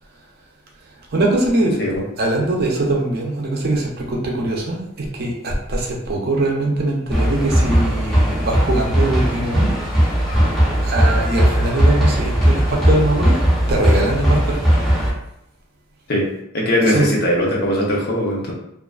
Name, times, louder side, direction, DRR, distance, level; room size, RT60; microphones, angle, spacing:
voice 1, 1.1-1.7 2.2-4.8 5.1-9.7 10.8-13.4 13.7-14.6 16.8-17.1, right 2 dB, 50° right, -1 dB, 0.5 m, -21 dB
sound 1, 7.1-15.1, equal, ahead, 0.6 m, -17 dB
voice 2, 16.5-18.5, left 1 dB, 50° left, -3 dB, 0.6 m, -19 dB
2.4 x 2.4 x 2.3 m, 0.82 s
head